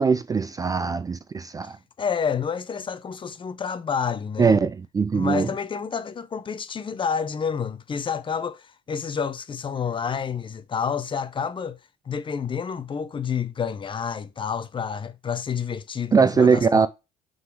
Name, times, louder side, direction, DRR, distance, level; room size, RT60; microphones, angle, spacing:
voice 1, 0.0-1.8 4.4-5.5 16.1-16.9, right 5 dB, 20° right, 0.3 m, -21 dB
voice 2, 2.0-4.6 5.1-11.8 12.1-16.9, left 6 dB, 30° left, 0.6 m, -29 dB
5.7 x 4.0 x 4.6 m
cardioid pair, 110°, 17 cm